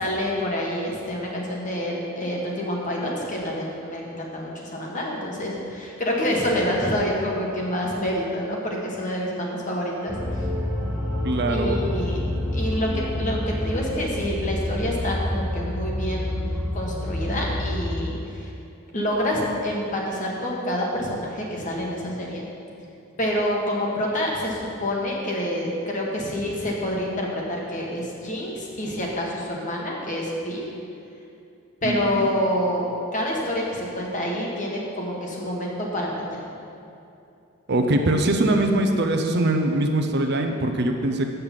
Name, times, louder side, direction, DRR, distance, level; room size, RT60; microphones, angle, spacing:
voice 1, 0.0-10.1 11.5-12.2 12.5-16.3 16.7-18.5 18.9-22.4 23.2-30.6 31.8-36.4, equal, 35° left, -2 dB, 1.6 m, -27 dB
sound 1, 10.1-18.1, left 1 dB, 5° right, 1.1 m, -28 dB
voice 2, 11.2-11.9 31.8-32.3 37.7-41.2, right 1 dB, 50° right, 4 dB, 0.7 m, -22 dB
7.8 x 6.7 x 7.3 m, 2.7 s
head